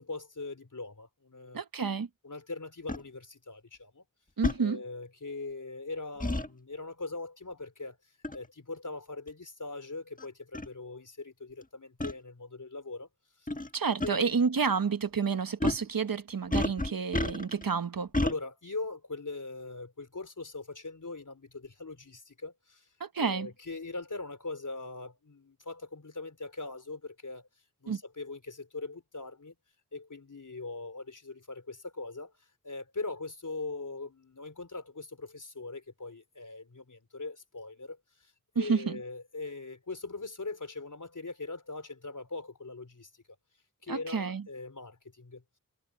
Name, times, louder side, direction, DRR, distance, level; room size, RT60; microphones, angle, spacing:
voice 1, 0.0-1.6 2.2-4.0 4.6-8.0 8.3-13.1 14.0-14.3 18.2-22.8 23.2-27.5 27.8-29.5 29.9-32.3 32.6-38.0 38.5-43.1 43.8-45.4, left 3 dB, 65° left, 4.1 m, -41 dB
voice 2, 1.5-2.1 4.4-4.8 13.7-18.1 23.0-23.5 27.9-28.0 38.5-39.0 43.9-44.4, right 5 dB, 80° right, 1.1 m, -30 dB
sound 1, 2.9-3.0 4.4-4.6 6.2-6.5 8.2-8.5 9.3-9.4 10.2-10.3 10.5-10.7 12.0-12.1 13.5-13.7 14.0-14.1 15.6-15.9 16.5-17.6 18.1-18.4, left 1 dB, 25° left, 1.6 m, -30 dB
wide cardioid pair, 45°, 34 cm